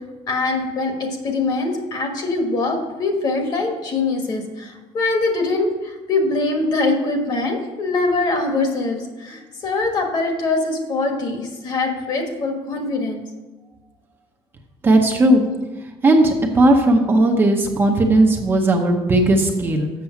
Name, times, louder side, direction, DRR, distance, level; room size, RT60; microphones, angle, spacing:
voice 1, 0.3-13.2, left 3 dB, 40° left, 3 dB, 1.4 m, -23 dB
voice 2, 14.8-15.4 16.0-19.9, right 1 dB, 20° right, 1 dB, 0.7 m, -16 dB
7.2 x 6.7 x 5.8 m, 1.2 s
cardioid pair, 170°, 11 cm